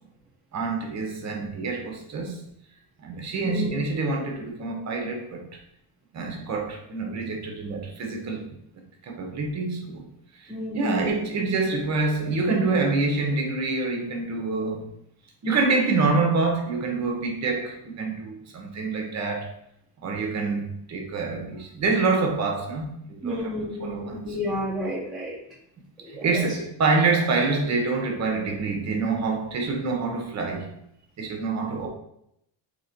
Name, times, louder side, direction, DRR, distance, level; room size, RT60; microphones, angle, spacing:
voice 1, 0.5-2.4 3.0-5.6 6.1-8.6 9.0-10.1 10.4-14.9 15.4-19.5 20.0-23.5 23.8-24.2 26.1-30.7 31.2-31.9, right 3 dB, 35° right, 0.8 m, -26 dB
voice 2, 10.5-11.1 23.2-25.4 26.0-26.5, left 1 dB, ahead, 0.5 m, -31 dB
4.0 x 2.9 x 4.3 m
cardioid pair, 170°, 47 cm